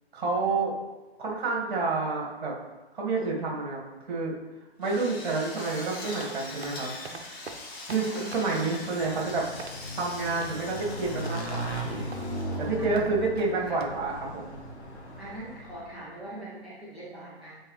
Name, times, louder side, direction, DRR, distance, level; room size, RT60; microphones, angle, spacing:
voice 1, 0.1-0.7 1.2-2.5 2.9-3.8 4.1-4.3 4.8-6.9 7.9-9.4 10.0-11.9 12.6-14.5, right 3 dB, 45° right, -3 dB, 2.2 m, -29 dB
Drill, 4.8-12.7, left 2 dB, 20° left, 1.2 m, -43 dB
sound 1, 5.9-13.9, right 4 dB, 70° right, 0.9 m, -45 dB
Motorcycle / Engine, 8.8-16.1, equal, 85° left, 1.3 m, -37 dB
voice 2, 12.4-13.1 13.7-13.8 15.2-17.6, right 1 dB, ahead, -12 dB, 0.5 m, -42 dB
8.9 x 4.0 x 3.3 m, 1.2 s
figure-of-eight pair, 130°, 33 cm